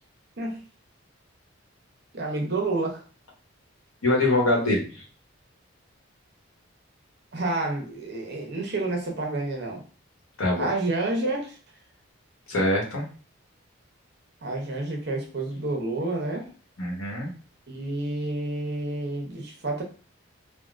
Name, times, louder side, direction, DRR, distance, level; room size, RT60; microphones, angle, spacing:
voice 1, 2.1-3.0 7.3-9.8 10.6-11.6 14.4-16.5 17.7-19.8, right 2 dB, 50° right, 1 dB, 0.8 m, -29 dB
voice 2, 4.0-5.0 10.4-10.7 12.5-13.1 16.8-17.3, left 1 dB, 85° left, -1 dB, 1.1 m, -24 dB
3.6 x 2.1 x 2.5 m, 0.38 s
head